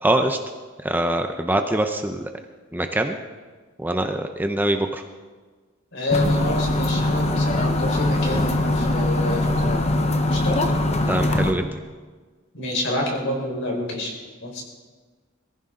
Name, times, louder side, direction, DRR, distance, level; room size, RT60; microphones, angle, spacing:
voice 1, 0.0-0.4 0.8-2.3 2.7-3.2 3.8-5.0 11.1-11.7, right 1 dB, 10° right, 6 dB, 0.7 m, -23 dB
voice 2, 5.9-9.8 10.3-10.7 12.5-14.1 14.4-14.6, left 1 dB, 60° left, 0 dB, 4.5 m, -28 dB
sound 1, 6.1-11.5, left 1 dB, 30° left, 1.0 m, -22 dB
22.0 x 15.0 x 3.8 m, 1.4 s
head